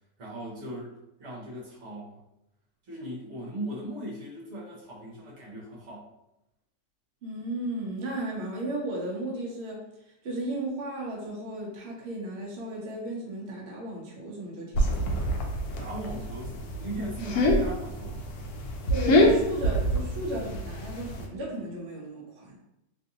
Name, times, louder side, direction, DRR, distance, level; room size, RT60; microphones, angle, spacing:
voice 1, 0.2-2.2 2.8-6.1 15.8-18.2, right 1 dB, 50° right, -6 dB, 1.2 m, -39 dB
voice 2, 7.2-9.8 10.2-15.1 18.9-22.6, right 1 dB, 75° right, -2 dB, 0.6 m, -35 dB
sound 1, 14.7-21.3, equal, 70° left, 0.9 m, -26 dB
3.1 x 2.6 x 2.7 m, 0.86 s
omnidirectional pair, 1.9 m